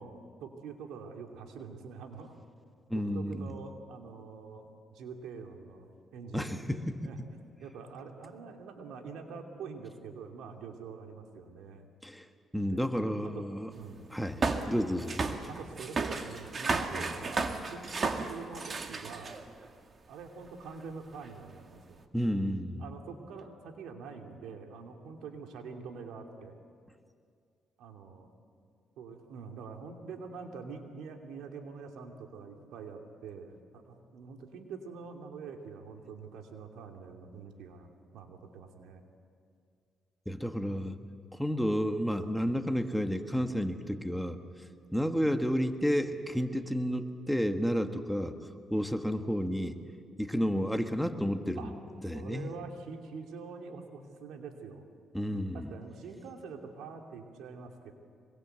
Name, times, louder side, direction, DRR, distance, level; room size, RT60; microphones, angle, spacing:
voice 1, 0.0-2.4 2.9-11.9 12.7-12.8 13.3-13.5 13.7-14.1 15.5-19.4 20.1-22.0 22.8-26.6 27.8-28.3 29.0-37.9 38.1-39.0 45.0-45.2 51.6-51.7 52.1-54.8 55.5-57.9, right 5 dB, 85° right, 3 dB, 2.8 m, -45 dB
voice 2, 2.9-3.5 6.3-7.1 12.0-12.3 12.5-13.7 14.1-15.3 16.9-17.0 22.1-22.8 40.3-41.0 41.4-44.4 44.9-48.3 48.7-49.8 50.2-51.7 52.0-52.5 55.1-55.7, equal, ahead, 7 dB, 1.4 m, -31 dB
sound 1, 14.4-19.7 20.5-20.6 21.2-21.3, right 3 dB, 40° right, 2.0 m, -33 dB
25.0 x 22.5 x 8.2 m, 2.2 s
cardioid pair, 90°, 0 cm